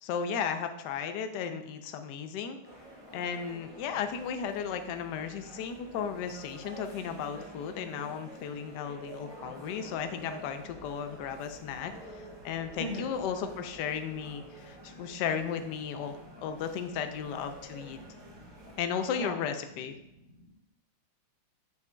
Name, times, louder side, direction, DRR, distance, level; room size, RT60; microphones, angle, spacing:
voice 1, 0.0-2.6 3.1-18.0 18.8-20.0, left 7 dB, 70° left, 7 dB, 1.0 m, -35 dB
sound 1, 2.6-18.8, right 1 dB, 30° right, 0.5 m, -49 dB
voice 2, 18.0-18.5 19.2-19.3 20.3-20.5, right 1 dB, 45° right, -5 dB, 2.4 m, -40 dB
7.8 x 5.8 x 2.2 m, 0.92 s
omnidirectional pair, 2.3 m